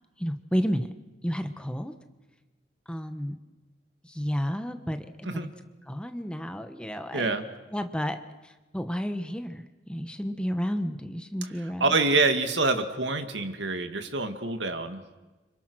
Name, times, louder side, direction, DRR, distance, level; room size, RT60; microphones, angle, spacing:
voice 1, 0.2-0.9 1.2-1.9 2.9-3.3 4.0-5.5 5.9-7.3 7.7-12.0, equal, 5° left, 8 dB, 1.2 m, -31 dB
voice 2, 7.1-7.4 11.8-15.0, right 3 dB, 80° right, 7 dB, 2.2 m, -26 dB
29.5 x 26.5 x 6.4 m, 1.2 s
head